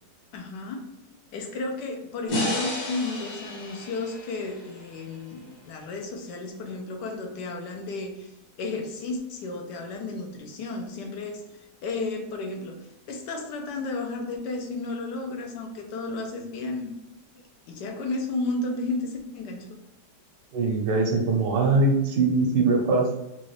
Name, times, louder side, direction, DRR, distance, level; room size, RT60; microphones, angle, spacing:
voice 1, 0.3-0.8 1.3-12.8 13.1-16.9 17.3-19.8, left 3 dB, 75° left, 3 dB, 1.2 m, -33 dB
sound 1, 2.3-5.5, left 1 dB, 55° left, 1.3 m, -32 dB
voice 2, 20.5-23.3, right 3 dB, 75° right, 2 dB, 1.4 m, -22 dB
4.0 x 2.4 x 3.1 m, 0.91 s
omnidirectional pair, 1.9 m